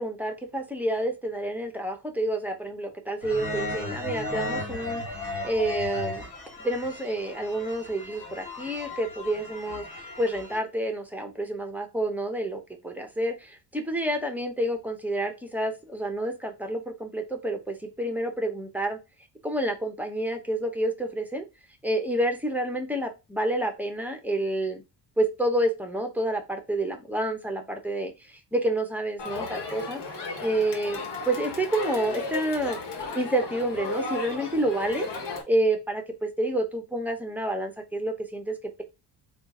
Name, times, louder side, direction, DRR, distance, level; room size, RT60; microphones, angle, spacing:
voice 1, 0.0-6.3 6.6-19.0 19.4-21.5 21.8-24.8 25.2-30.0 30.4-32.8 33.1-35.1 35.5-38.8, right 1 dB, 5° right, 4 dB, 0.6 m, -29 dB
sound 1, 3.2-10.6, left 1 dB, 55° left, 1.7 m, -35 dB
Crowd, 29.2-35.4, left 3 dB, 75° left, 1.2 m, -34 dB
3.7 x 2.4 x 3.6 m, 0.26 s
cardioid pair, 130°, 41 cm